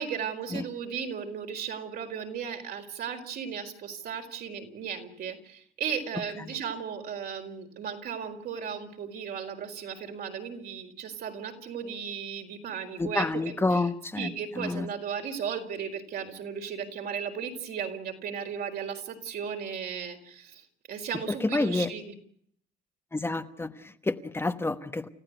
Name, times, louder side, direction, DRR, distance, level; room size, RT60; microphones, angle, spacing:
voice 1, 0.0-13.3 14.2-22.2, right 7 dB, 65° right, 3 dB, 4.6 m, -36 dB
voice 2, 13.0-14.9 21.3-21.9 23.1-25.1, left 2 dB, 15° left, 7 dB, 1.2 m, -29 dB
30.0 x 15.0 x 8.1 m, 0.63 s
cardioid pair, 110°, 17 cm